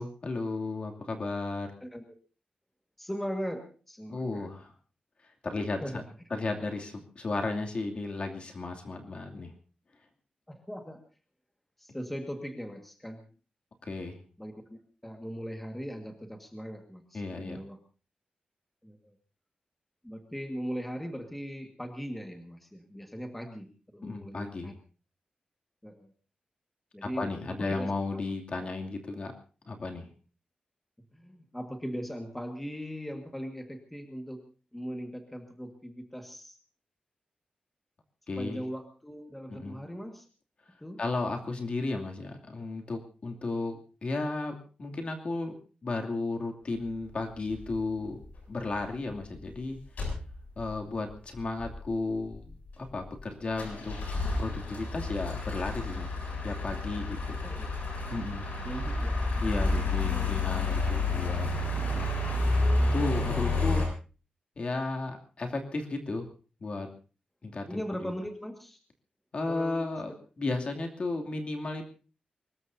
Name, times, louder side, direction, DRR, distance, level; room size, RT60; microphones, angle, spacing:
voice 1, 0.0-1.7 4.1-4.7 5.4-6.0 6.3-9.5 13.8-14.2 17.1-17.6 24.0-24.8 27.0-29.3 29.7-30.1 38.3-38.6 39.5-39.8 41.0-45.5 45.8-48.2 48.5-49.8 50.6-54.0 54.4-56.1 56.4-57.4 58.1-58.5 59.4-62.2 62.9-63.8 64.6-66.2 66.6-66.9 67.4-68.1 69.3-71.9, left 3 dB, 45° left, 3 dB, 2.6 m, -34 dB
voice 2, 3.0-4.5 5.8-6.1 10.5-11.0 11.8-13.2 14.4-17.8 18.8-19.2 20.0-24.7 25.8-26.1 26.9-28.2 31.1-34.4 34.7-36.6 38.4-40.3 40.8-41.0 57.4-57.7 58.6-59.2 60.1-60.3 67.6-68.8 69.5-69.9, equal, 5° left, 4 dB, 1.8 m, -39 dB
sound 1, 47.5-47.8 48.2-48.4 48.7-48.8 49.1-49.5 50.0-50.7 51.1-51.2 51.4-51.9 52.3-53.2 53.5-63.9, left 2 dB, 70° left, 7.5 m, -30 dB
23.5 x 20.5 x 2.7 m, 0.35 s
wide cardioid pair, 170°, 3 cm